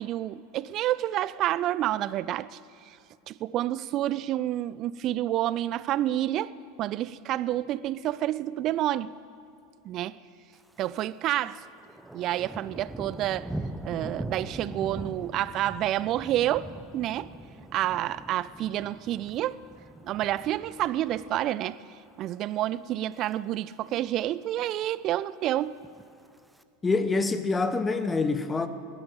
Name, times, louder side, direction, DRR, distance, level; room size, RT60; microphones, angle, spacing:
voice 1, 0.0-2.6 2.9-3.0 3.3-6.5 6.8-9.1 9.8-10.2 10.8-11.6 12.1-13.5 13.8-16.7 16.9-17.3 17.7-19.6 20.0-21.8 22.2-25.8, right 13 dB, 40° right, 0.3 m, -29 dB
Thunder, 10.5-11.1 11.4-21.7 22.1-22.4 22.9-23.3 23.6-23.7 23.9-24.0 24.3-24.9 25.7-26.6, right 1 dB, 5° right, 0.7 m, -42 dB
voice 2, 26.8-28.7, left 3 dB, 15° left, 1.0 m, -26 dB
16.0 x 12.0 x 7.3 m
figure-of-eight pair, 80°, 0 cm